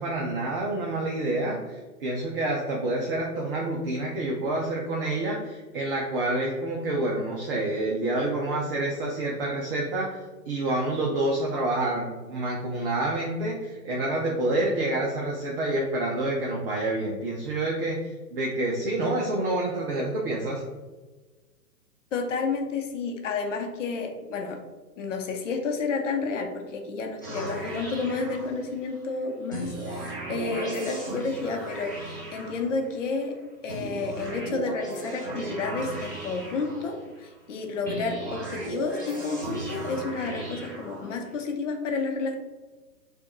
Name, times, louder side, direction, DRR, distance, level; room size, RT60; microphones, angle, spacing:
voice 1, 0.0-10.2 10.5-18.0 18.3-20.6, right 2 dB, 35° right, -3 dB, 0.7 m, -28 dB
voice 2, 22.1-24.6 25.0-33.4 33.6-42.4, left 4 dB, 50° left, 3 dB, 0.9 m, -31 dB
sound 1, 27.2-29.0 29.5-33.1 33.7-37.3 37.9-41.4, right 2 dB, 15° left, 0.3 m, -36 dB
6.4 x 2.5 x 3.0 m, 1.3 s
figure-of-eight pair, 125°, 47 cm